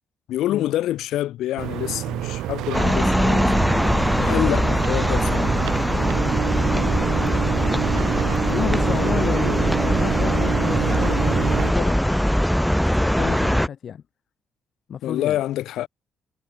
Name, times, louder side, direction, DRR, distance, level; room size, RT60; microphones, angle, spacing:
voice 1, 0.3-5.6 15.0-15.9, left 13 dB, 85° left, 4.9 m, -27 dB
sound 1, 1.6-11.7, right 14 dB, 85° right, 1.0 m, -28 dB
sound 2, 2.7-13.7, equal, ahead, 1.0 m, -21 dB
voice 2, 8.4-12.6 13.0-14.0 14.9-15.4, left 8 dB, 60° left, 2.0 m, -31 dB
cardioid pair, 90°, 0 cm